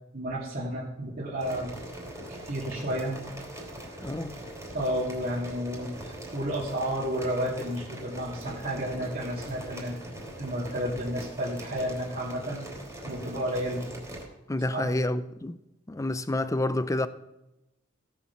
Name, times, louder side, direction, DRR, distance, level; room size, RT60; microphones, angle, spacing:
voice 1, 0.1-1.7 2.3-3.2 4.7-9.9 10.4-12.6 13.0-13.8 14.7-15.0, equal, 45° right, 2.3 m, -31 dB
sound 1, 1.4-14.3, right 1 dB, 15° right, 3.1 m, -42 dB
voice 2, 4.0-4.4 14.5-15.6 15.9-17.1, left 1 dB, 15° left, 0.5 m, -28 dB
16.5 x 7.1 x 5.9 m
head